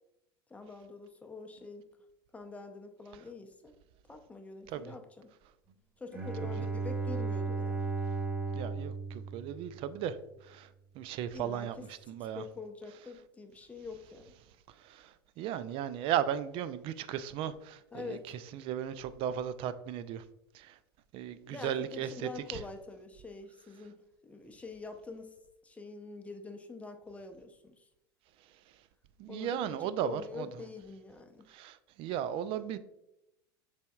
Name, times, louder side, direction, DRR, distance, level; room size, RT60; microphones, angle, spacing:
voice 1, 0.5-1.9 2.3-3.7 4.1-5.3 6.0-7.9 11.3-11.7 12.1-14.3 17.9-18.3 21.5-25.4 25.6-27.9 29.3-31.5, left 3 dB, 10° left, 5 dB, 0.6 m, -45 dB
Bowed string instrument, 6.1-10.1, right 4 dB, 15° right, 1.1 m, -35 dB
voice 2, 8.5-10.2 10.5-10.7 11.0-12.4 14.8-15.1 15.4-18.2 18.5-20.2 20.5-20.8 21.1-22.6 29.2-30.5 31.5-32.8, right 10 dB, 45° right, 14 dB, 0.4 m, -36 dB
6.6 x 3.4 x 2.3 m, 0.87 s
hypercardioid pair, 80°, 13 cm